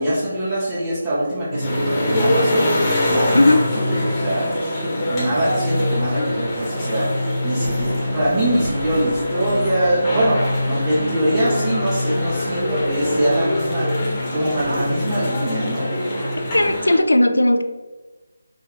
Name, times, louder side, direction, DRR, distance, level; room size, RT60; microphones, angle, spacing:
voice 1, 0.0-3.6 3.9-15.9, right 1 dB, 20° right, -11 dB, 1.0 m, -23 dB
sound 1, 1.5-16.4, left 1 dB, 65° left, 0.8 m, -27 dB
sound 2, 1.6-17.0, left 1 dB, 25° left, 1.1 m, -25 dB
sound 3, 7.6-15.0, right 1 dB, 60° right, 0.8 m, -38 dB
voice 2, 16.5-17.6, left 1 dB, 90° left, 8 dB, 0.3 m, -16 dB
5.3 x 2.4 x 3.3 m, 1.2 s
figure-of-eight pair, 160°, 0 cm